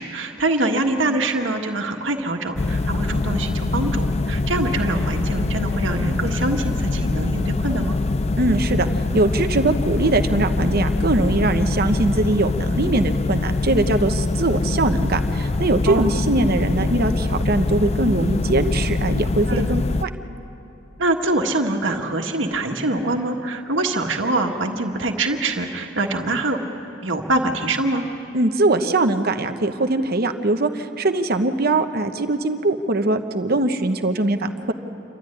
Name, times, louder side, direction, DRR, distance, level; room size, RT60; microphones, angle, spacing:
voice 1, 0.0-8.0 15.9-16.1 19.5-19.7 21.0-26.6 27.0-28.0, right 2 dB, 75° right, 2 dB, 1.7 m, -24 dB
sound 1, 2.6-20.0, left 3 dB, 35° left, 0.5 m, -23 dB
voice 2, 8.4-8.9 9.1-20.1 28.3-34.7, right 2 dB, 55° right, 7 dB, 1.0 m, -21 dB
28.5 x 13.0 x 9.8 m, 2.9 s
head